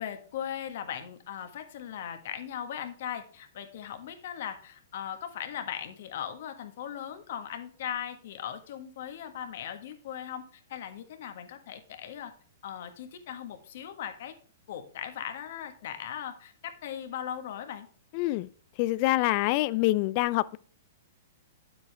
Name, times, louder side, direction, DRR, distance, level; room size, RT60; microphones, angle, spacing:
voice 1, 0.0-12.3 12.6-14.3 14.7-17.9, left 9 dB, 60° left, 1.5 m, -38 dB
voice 2, 18.1-18.5 18.8-20.6, left 18 dB, 45° left, 0.4 m, -26 dB
9.2 x 7.9 x 3.4 m
hypercardioid pair, 125°, 0 cm